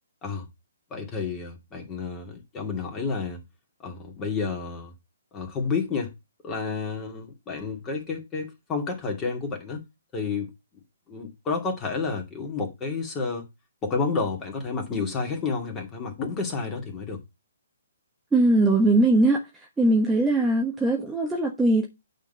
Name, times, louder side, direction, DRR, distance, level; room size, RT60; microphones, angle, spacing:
voice 1, 0.9-3.4 3.8-4.9 5.3-6.1 6.4-9.8 10.1-10.8 11.1-13.4 13.8-17.2, left 4 dB, 20° left, 2.4 m, -30 dB
voice 2, 18.3-19.4 19.8-21.8, right 2 dB, 10° right, 1.2 m, -20 dB
9.1 x 3.9 x 5.4 m
figure-of-eight pair, 130°, 0 cm